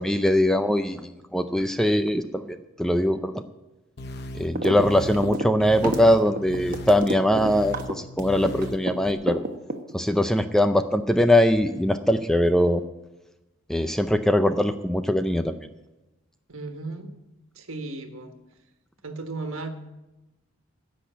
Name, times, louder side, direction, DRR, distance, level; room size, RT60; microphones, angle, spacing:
voice 1, 0.0-3.4 4.3-9.4 9.9-12.8 13.7-15.6, left 1 dB, ahead, 9 dB, 0.5 m, -22 dB
sound 1, 4.0-9.1, left 1 dB, 50° left, 0.8 m, -38 dB
sound 2, 4.6-4.8 5.1-8.9 9.3-10.2, right 1 dB, 40° right, 1.1 m, -29 dB
voice 2, 16.5-17.1 17.5-18.3 19.0-19.7, right 3 dB, 80° right, 6 dB, 1.5 m, -35 dB
16.0 x 6.3 x 8.4 m, 1.0 s
head